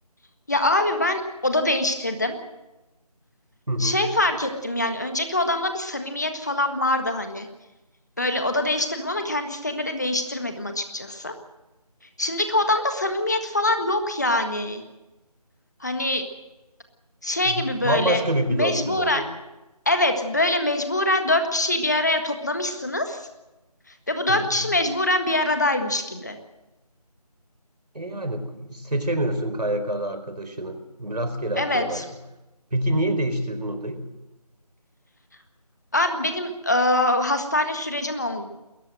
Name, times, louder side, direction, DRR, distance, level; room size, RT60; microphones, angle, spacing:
voice 1, 0.5-2.4 3.8-7.5 8.2-11.3 12.2-14.8 15.8-16.2 17.2-18.2 18.5-19.2 19.8-23.3 24.1-26.4 31.5-32.0 35.9-38.4, left 1 dB, 25° left, 7 dB, 1.6 m, -24 dB
voice 2, 3.7-4.1 17.4-19.3 24.3-24.7 27.9-32.0 32.7-34.1, right 1 dB, 90° right, 9 dB, 4.5 m, -27 dB
21.5 x 17.5 x 7.7 m, 1.0 s
figure-of-eight pair, 180°, 20 cm